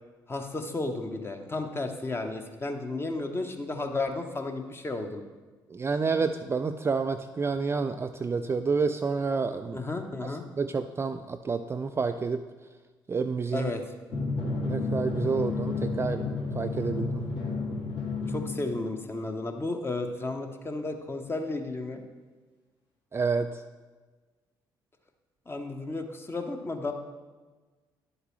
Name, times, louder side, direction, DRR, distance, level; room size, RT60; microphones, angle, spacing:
voice 1, 0.3-5.2 9.7-10.4 13.5-13.8 18.3-22.0 25.5-26.9, left 2 dB, 20° left, 5 dB, 1.0 m, -33 dB
voice 2, 5.7-9.8 10.6-12.5 13.1-13.7 14.6-16.3 16.5-17.3 23.1-23.6, right 4 dB, 20° right, 8 dB, 0.3 m, -29 dB
Drum, 14.1-19.2, left 3 dB, 55° left, 2.0 m, -31 dB
11.0 x 7.9 x 3.1 m, 1.3 s
figure-of-eight pair, 45°, 11 cm